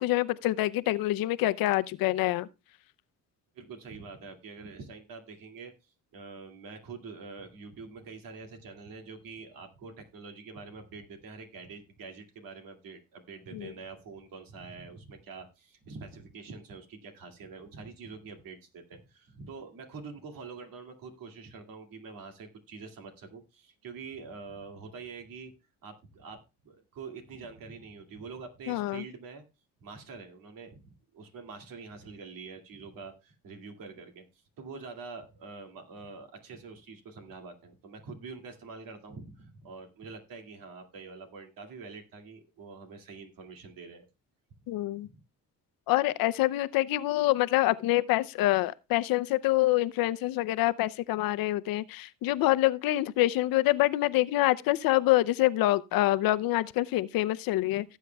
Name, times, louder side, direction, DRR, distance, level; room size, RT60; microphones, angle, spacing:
voice 1, 0.0-2.5 13.5-13.7 28.7-29.0 44.7-45.1 45.9-58.0, left 16 dB, 85° left, 0.6 m, -26 dB
voice 2, 3.5-25.5 25.8-29.4 29.8-34.2 34.6-44.1 45.1-45.2, right 4 dB, 75° right, 2.3 m, -45 dB
17.5 x 8.3 x 2.3 m
cardioid pair, 115°, 34 cm